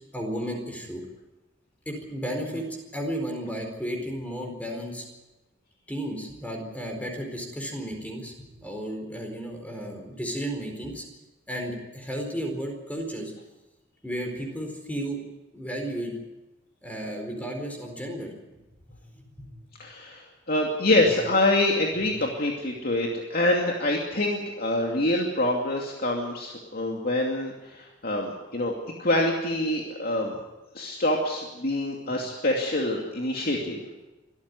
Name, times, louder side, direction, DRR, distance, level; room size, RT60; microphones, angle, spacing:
voice 1, 0.1-1.0 1.9-2.7 2.9-5.0 5.9-11.0 11.5-13.3 14.0-15.2 15.5-16.1 16.8-18.3 18.9-19.5 33.5-33.6, equal, 10° left, 3 dB, 4.4 m, -33 dB
voice 2, 19.8-30.4 30.7-33.8, left 1 dB, 55° left, 0 dB, 2.6 m, -26 dB
24.0 x 13.5 x 9.6 m, 1.1 s
head